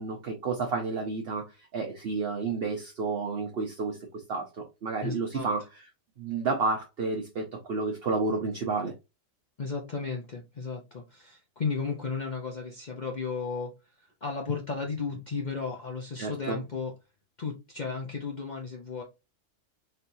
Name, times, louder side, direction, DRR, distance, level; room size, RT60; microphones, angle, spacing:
voice 1, 0.0-5.9 6.2-8.9 16.2-16.6, right 4 dB, 55° right, 2 dB, 0.9 m, -31 dB
voice 2, 5.0-5.5 9.6-13.7 14.2-16.9 17.4-19.0, left 5 dB, 40° left, 0 dB, 0.8 m, -34 dB
4.3 x 3.4 x 2.6 m, 0.25 s
omnidirectional pair, 1.3 m